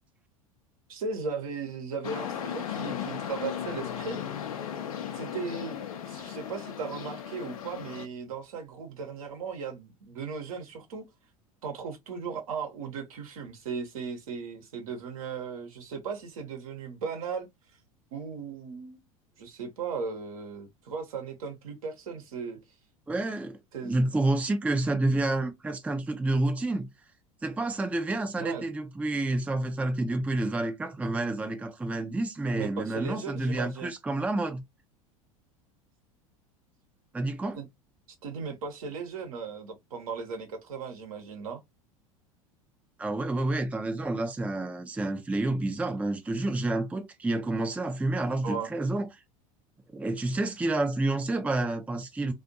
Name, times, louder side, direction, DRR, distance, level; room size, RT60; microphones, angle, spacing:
voice 1, 0.9-4.2 5.1-5.8 6.1-11.1 11.6-17.5 18.1-19.0 19.4-22.6 23.7-23.9 28.3-28.7 32.5-33.9 37.6-37.7 38.2-41.6 48.4-48.7, right 5 dB, 70° right, 0.9 m, -37 dB
sound 1, 2.0-8.1, left 9 dB, 75° left, 0.5 m, -36 dB
voice 2, 23.1-26.9 27.4-34.6 37.1-37.6 43.0-49.1 49.9-52.3, right 2 dB, 5° right, 0.4 m, -29 dB
2.5 x 2.4 x 2.6 m
hypercardioid pair, 80°, 18 cm